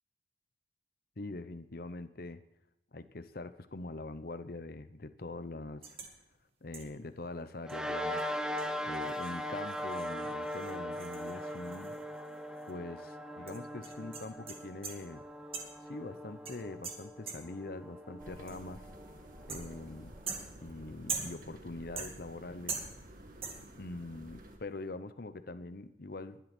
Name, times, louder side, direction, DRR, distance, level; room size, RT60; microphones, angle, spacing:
voice 1, 1.2-2.4 2.9-6.0 6.6-8.4 8.8-12.0 12.7-15.2 15.8-18.8 19.5-20.1 20.6-22.8 23.8-26.4, left 2 dB, 50° left, 12 dB, 0.8 m, -43 dB
sound 1, 5.8-6.2 6.7-7.0 7.7-7.8 8.1-8.2 8.6-12.4 12.6-12.7 13.5-15.1 15.5-15.9 16.5-17.7 18.5-18.8 19.5-19.9 20.3-21.6 22.0-22.4 22.7-23.2 23.4-23.8, right 5 dB, 30° right, 2.1 m, -43 dB
sound 2, 7.6-20.4, equal, 5° right, 0.9 m, -40 dB
sound 3, 18.2-24.6, right 1 dB, 45° right, 2.2 m, -52 dB
21.0 x 11.5 x 4.4 m, 0.88 s
head